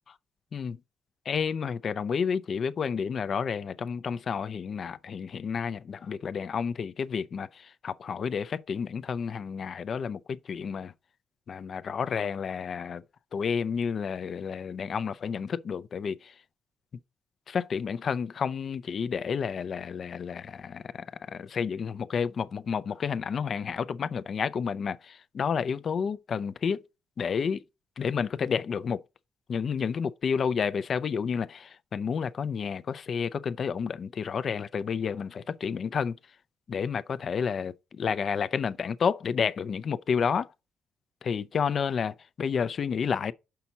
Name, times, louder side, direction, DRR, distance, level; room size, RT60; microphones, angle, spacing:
voice 1, 1.3-10.9 11.5-13.0 13.3-16.3 17.5-26.8 27.2-27.6 28.0-29.0 29.5-36.2 36.7-40.5 41.2-43.3, left 6 dB, 50° left, 0.5 m, -30 dB
5.9 x 5.7 x 4.0 m
cardioid pair, 90°, 0 cm